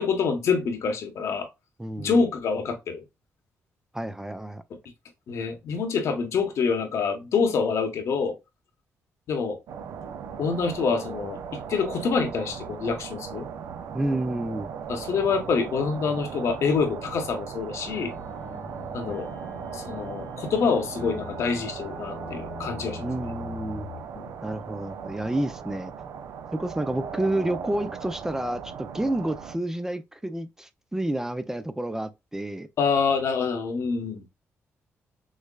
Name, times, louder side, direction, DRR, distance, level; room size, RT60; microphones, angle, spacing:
voice 1, 0.0-1.5 2.0-3.0 5.3-8.4 9.3-9.6 10.4-13.5 14.9-18.1 18.9-19.3 19.7-23.1 24.1-24.3 32.8-34.2, left 5 dB, 70° left, 1.0 m, -26 dB
voice 2, 1.8-2.2 3.9-4.6 13.9-14.7 23.0-23.9 24.4-25.9 26.6-32.7, right 1 dB, 10° right, 0.4 m, -30 dB
sound 1, 9.7-29.6, right 7 dB, 75° right, 0.5 m, -38 dB
sound 2, 15.1-24.0, left 5 dB, 45° left, 1.1 m, -44 dB
6.4 x 2.1 x 2.2 m
cardioid pair, 85°, 5 cm